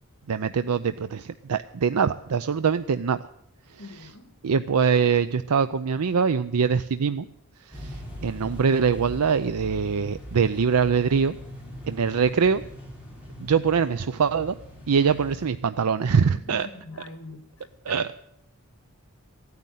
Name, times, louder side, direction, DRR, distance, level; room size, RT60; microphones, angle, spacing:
voice 1, 0.3-3.2 3.7-4.1 4.4-7.3 7.7-11.4 11.9-12.6 13.4-14.5 14.9-16.7 17.9-18.1, right 6 dB, 90° right, 12 dB, 0.5 m, -23 dB
voice 2, 3.8-4.3 16.3-18.2, left 2 dB, 65° left, 9 dB, 2.0 m, -43 dB
sound 1, 7.7-15.4, equal, 5° right, 5.0 m, -41 dB
15.0 x 9.5 x 9.1 m, 0.71 s
head